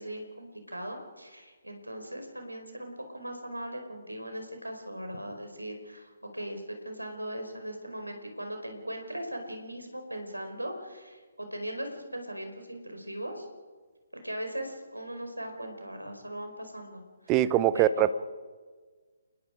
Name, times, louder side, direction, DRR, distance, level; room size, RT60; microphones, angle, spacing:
voice 1, 0.0-13.4 14.2-17.3 17.7-18.1, right 1 dB, 85° right, 4 dB, 4.9 m, -39 dB
voice 2, 17.3-18.1, right 12 dB, 20° right, 16 dB, 0.7 m, -23 dB
29.0 x 21.0 x 5.0 m, 1.5 s
figure-of-eight pair, 140°, 0 cm